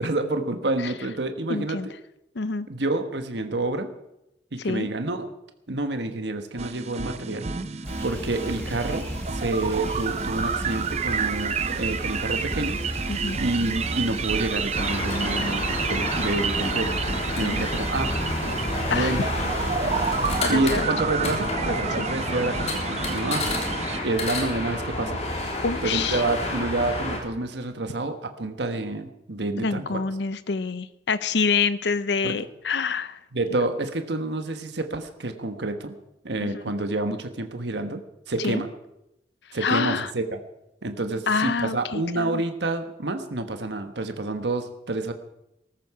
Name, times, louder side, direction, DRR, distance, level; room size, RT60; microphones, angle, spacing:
voice 1, 0.0-1.9 2.7-3.9 4.5-5.3 5.7-7.5 8.0-9.1 9.3-18.1 18.9-19.2 20.5-23.5 24.0-30.0 32.2-32.3 33.3-36.0 36.2-38.7 39.5-40.4 40.8-45.1, right 2 dB, 75° right, 7 dB, 1.3 m, -28 dB
voice 2, 1.5-1.9 2.4-2.7 4.6-4.9 13.1-13.4 17.4-17.6 18.9-19.1 20.4-20.9 22.0-22.1 25.6-26.2 29.6-33.2 36.4-36.6 38.4-38.6 39.6-40.1 41.3-42.4, left 5 dB, 75° left, 14 dB, 0.7 m, -27 dB
sound 1, 6.6-24.0, right 5 dB, 35° right, 0.6 m, -30 dB
sound 2, 7.8-20.5, equal, 10° left, 2.5 m, -35 dB
sound 3, 14.7-27.2, left 1 dB, 35° left, 3.5 m, -30 dB
17.5 x 14.0 x 4.9 m, 0.87 s
head